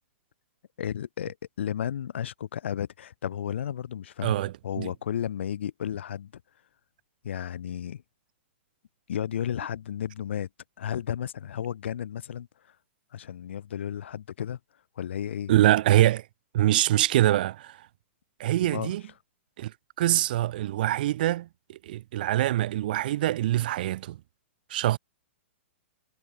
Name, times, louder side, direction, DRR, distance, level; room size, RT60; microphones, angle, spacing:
voice 1, 0.8-6.3 7.2-8.0 9.1-10.5 10.8-12.5 13.1-14.6 15.0-15.5 18.6-18.9, left 9 dB, 70° left, 5.4 m, -33 dB
voice 2, 4.2-4.9 15.5-16.3 16.5-17.9 18.4-19.0 19.6-24.2 24.7-25.0, right 14 dB, 45° right, 1.4 m, -24 dB
hypercardioid pair, 165°, 7 cm